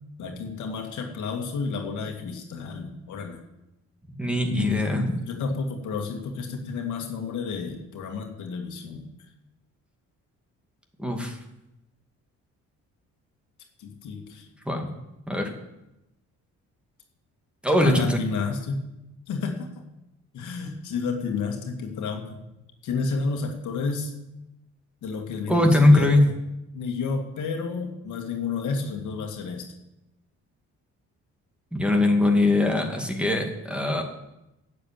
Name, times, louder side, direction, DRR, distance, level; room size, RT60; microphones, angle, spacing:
voice 1, 0.2-3.4 4.4-9.1 13.8-14.5 17.8-18.8 19.3-19.7 20.3-22.4 22.8-24.1 25.0-26.3 26.7-29.7, left 5 dB, 75° left, 3 dB, 2.1 m, -31 dB
voice 2, 4.2-5.1 11.0-11.4 14.7-14.9 15.3-15.5 17.6-18.2 25.5-26.3 31.7-34.0, left 1 dB, 5° right, 2 dB, 2.3 m, -21 dB
11.5 x 7.7 x 9.0 m, 0.93 s
cardioid pair, 90°, 30 cm